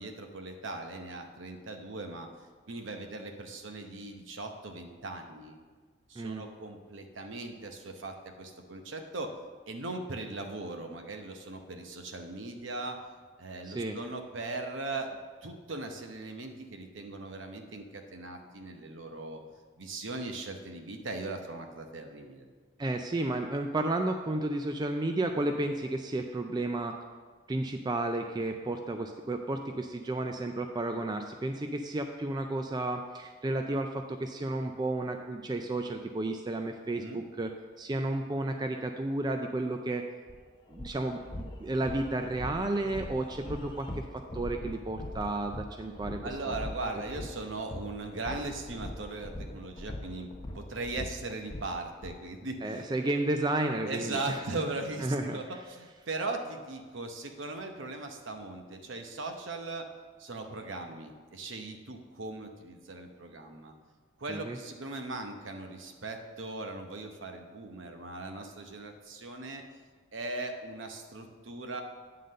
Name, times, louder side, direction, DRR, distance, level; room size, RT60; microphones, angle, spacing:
voice 1, 0.0-2.3 2.7-5.6 6.1-9.3 9.7-13.0 13.4-19.4 19.8-22.5 37.0-37.2 46.2-50.3 50.5-52.9 53.8-59.9 60.2-63.7 64.2-69.6 70.1-71.8, right 2 dB, 65° right, 4 dB, 0.9 m, -39 dB
voice 2, 6.2-6.5 13.7-14.0 22.8-27.0 27.5-37.5 37.8-40.0 40.7-44.0 44.3-46.5 52.6-54.4 55.0-55.4 64.3-64.6, right 2 dB, 20° right, 5 dB, 0.3 m, -32 dB
sound 1, 40.3-40.4 40.7-52.1, left 1 dB, 25° left, 0.6 m, -41 dB
9.4 x 3.9 x 6.5 m, 1.5 s
head